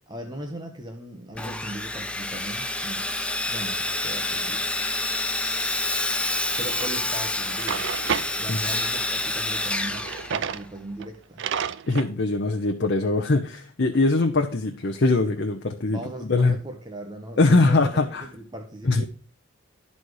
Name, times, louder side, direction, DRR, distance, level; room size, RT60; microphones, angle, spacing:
voice 1, 0.1-3.0 3.5-4.6 6.6-7.9 8.4-11.4 15.9-19.0, right 1 dB, 20° right, 3 dB, 0.9 m, -38 dB
Sawing, 1.4-10.8, left 2 dB, 5° left, 0.5 m, -28 dB
Drawer open or close, 6.8-6.9 7.4-8.3 9.9-10.6 11.0-11.1 11.4-12.1, right 7 dB, 60° right, 0.4 m, -30 dB
voice 2, 11.9-16.6 17.4-18.2 18.8-19.0, left 3 dB, 55° left, 4 dB, 0.8 m, -22 dB
12.0 x 4.2 x 4.7 m, 0.42 s
head